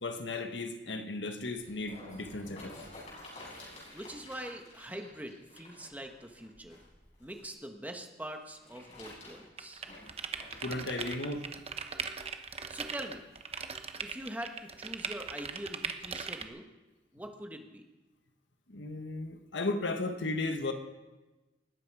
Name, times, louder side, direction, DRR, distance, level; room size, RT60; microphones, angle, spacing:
voice 1, 0.0-2.8 10.6-11.5 18.7-20.7, left 2 dB, 85° left, 1.5 m, -35 dB
sound 1, 1.6-7.5 8.4-10.9 11.5-11.6, left 1 dB, 40° left, 6.5 m, -51 dB
voice 2, 3.9-6.8 7.2-9.8 12.7-13.3 14.0-16.6 17.1-17.8, right 1 dB, 10° right, 1.4 m, -43 dB
sound 2, 9.6-16.4, right 6 dB, 35° right, 0.9 m, -39 dB
20.5 x 12.0 x 4.9 m
head